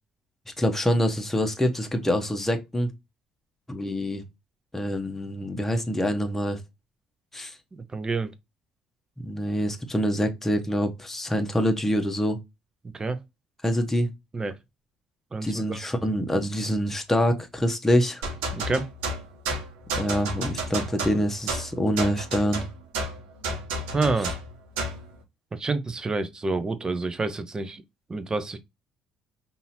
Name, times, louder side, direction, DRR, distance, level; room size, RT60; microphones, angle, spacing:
voice 1, 0.5-2.9 3.7-4.2 4.7-6.6 7.3-7.6 9.2-12.4 13.6-14.1 15.4-18.2 20.0-22.7, equal, 10° left, 1.1 m, -25 dB
voice 2, 7.7-8.3 12.9-13.2 14.3-14.6 15.3-15.8 18.5-18.9 23.9-24.3 25.5-27.8 28.1-28.6, right 3 dB, 25° right, 0.8 m, -28 dB
sound 1, 18.2-25.1, right 2 dB, 70° right, 1.1 m, -31 dB
5.4 x 2.8 x 2.8 m
figure-of-eight pair, 50°, 3 cm